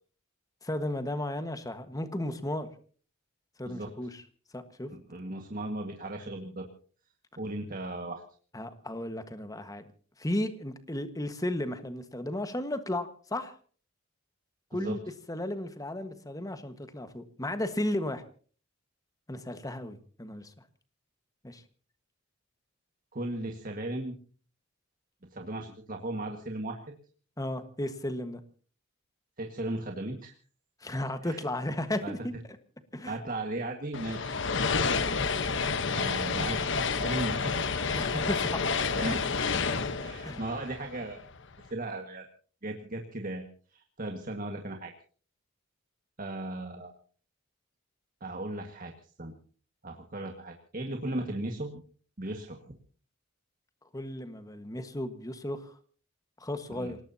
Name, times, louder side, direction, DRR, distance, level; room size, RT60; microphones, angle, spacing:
voice 1, 0.6-2.7 3.6-4.2 4.5-4.9 8.5-9.8 10.2-13.5 14.7-15.0 15.3-18.2 19.3-20.5 21.4-21.6 27.4-28.4 30.8-32.3 32.9-33.2 37.9-38.8 40.2-40.4 53.9-55.7 56.4-57.0, left 1 dB, 15° left, 9 dB, 1.4 m, -34 dB
voice 2, 4.9-6.7 7.4-8.2 14.7-15.0 23.1-24.1 25.3-26.8 29.4-30.3 31.2-31.4 32.0-32.1 33.1-34.4 35.9-36.6 36.9-37.9 39.0-39.2 40.0-41.2 41.7-42.3 42.6-43.4 43.7-44.9 46.2-46.9 48.2-48.9 49.2-49.3 49.8-51.8 52.2-52.7 56.7-56.9, right 2 dB, 45° right, 3 dB, 1.7 m, -36 dB
sound 1, 33.9-41.4, left 5 dB, 60° left, 1.1 m, -29 dB
28.0 x 18.5 x 2.8 m, 0.42 s
head